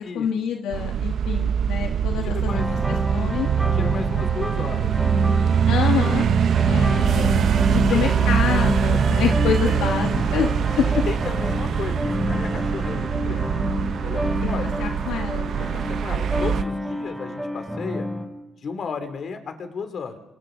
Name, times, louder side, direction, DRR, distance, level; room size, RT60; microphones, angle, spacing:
voice 1, 0.0-2.8 3.1-3.5 5.7-6.3 6.7-7.4 7.7-11.0 14.4-14.5 14.8-15.5, left 8 dB, 85° left, 3 dB, 1.4 m, -27 dB
sound 1, 0.7-16.6, right 8 dB, 65° right, 0.8 m, -23 dB
voice 2, 2.2-2.7 3.7-5.2 5.6-6.1 7.7-8.1 9.6-9.9 10.9-13.6 14.0-14.7 15.6-18.1 18.6-20.2, left 5 dB, 55° left, 7 dB, 2.7 m, -34 dB
sound 2, 2.5-18.3, left 1 dB, 5° right, 7.1 m, -28 dB
28.5 x 27.5 x 3.8 m, 0.92 s
cardioid pair, 90°, 0 cm